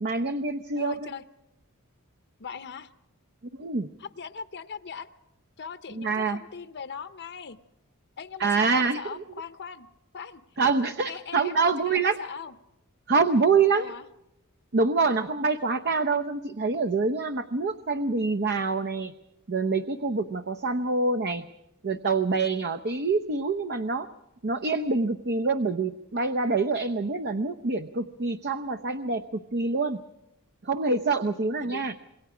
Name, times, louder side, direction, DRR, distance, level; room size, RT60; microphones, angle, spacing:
voice 1, 0.0-1.1 3.6-3.9 6.0-6.4 8.4-9.2 10.6-12.2 13.1-13.9 14.7-19.1 19.5-21.4 21.8-24.1 24.4-30.0 30.6-31.9, right 4 dB, 50° right, 11 dB, 0.8 m, -26 dB
voice 2, 0.7-1.2 2.4-2.9 4.0-5.1 5.6-7.6 8.2-9.9 10.1-10.4 11.1-12.5 13.7-14.1 31.6-31.9, left 6 dB, 50° left, 11 dB, 0.8 m, -39 dB
27.0 x 22.0 x 5.0 m, 0.89 s
head